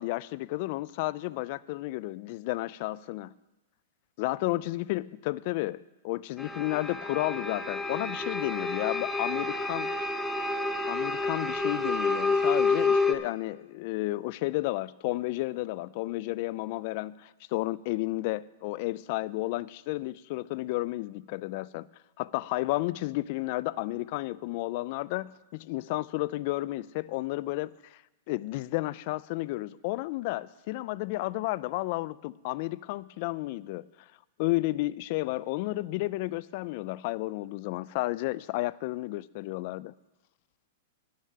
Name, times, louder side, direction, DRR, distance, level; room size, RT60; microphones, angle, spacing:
voice 1, 0.0-3.3 4.2-9.9 10.9-21.9 22.2-27.7 28.3-33.9 34.4-39.9, left 19 dB, 45° left, 0.3 m, -32 dB
sound 1, 6.4-13.1, left 3 dB, 5° left, 0.6 m, -29 dB
10.5 x 6.6 x 8.6 m
hypercardioid pair, 150°, 0 cm